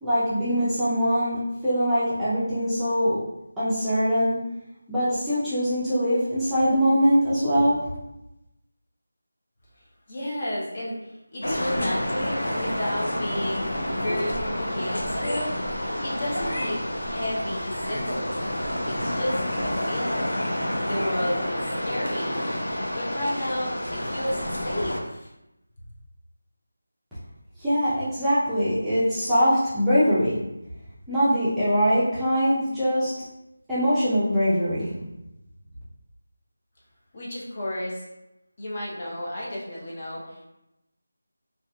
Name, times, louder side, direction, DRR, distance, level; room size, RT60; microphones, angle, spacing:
voice 1, 0.0-1.4 1.6-3.2 3.6-4.4 4.9-7.8 27.6-30.4 31.1-33.1 33.7-35.0, equal, 5° right, -16 dB, 0.5 m, -22 dB
voice 2, 10.1-18.5 18.8-20.4 20.8-22.5 22.9-25.3 37.1-38.0 38.6-40.5, left 1 dB, 35° left, -5 dB, 0.7 m, -32 dB
sound 1, 11.4-25.0, left 1 dB, 90° left, 0.6 m, -29 dB
2.6 x 2.4 x 2.3 m, 0.89 s
figure-of-eight pair, 170°, 0 cm